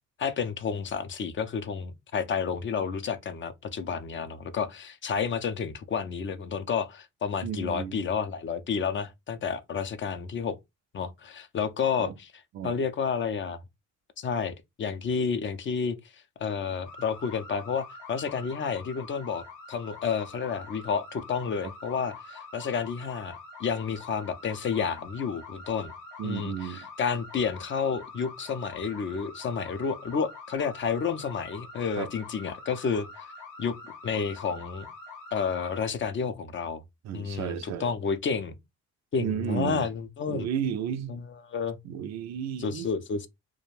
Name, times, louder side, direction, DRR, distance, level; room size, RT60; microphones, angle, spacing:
voice 1, 0.2-10.6 10.9-12.3 12.6-13.6 14.2-16.0 16.4-25.9 26.2-33.3 33.6-33.7 34.0-34.9 35.3-36.8 37.1-38.5 39.1-40.5 41.1-41.8 42.6-43.3, left 6 dB, 40° left, 0.5 m, -30 dB
voice 2, 7.4-8.0 12.0-12.1 12.5-12.8 26.2-26.9 32.0-32.1 37.0-37.9 39.2-39.9 40.3-41.2 41.8-42.9, right 9 dB, 60° right, 0.4 m, -33 dB
sound 1, 16.8-35.9, left 3 dB, 90° left, 0.9 m, -45 dB
2.4 x 2.1 x 3.1 m
cardioid pair, 90°, 30 cm